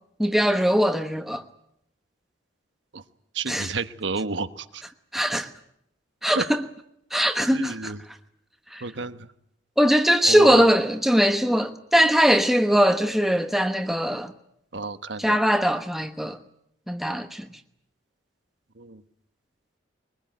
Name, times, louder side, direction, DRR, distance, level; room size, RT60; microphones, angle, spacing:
voice 1, 0.2-1.4 3.5-3.7 5.1-5.5 6.2-6.6 7.1-7.9 8.7-8.8 9.8-14.3 15.2-16.4 16.9-17.5, equal, ahead, 1.1 m, -21 dB
voice 2, 3.3-4.8 6.3-6.4 7.5-8.0 8.8-9.3 10.3-10.7 14.7-15.4 18.8-19.0, right 3 dB, 70° right, 1.2 m, -31 dB
23.0 x 20.0 x 9.3 m
head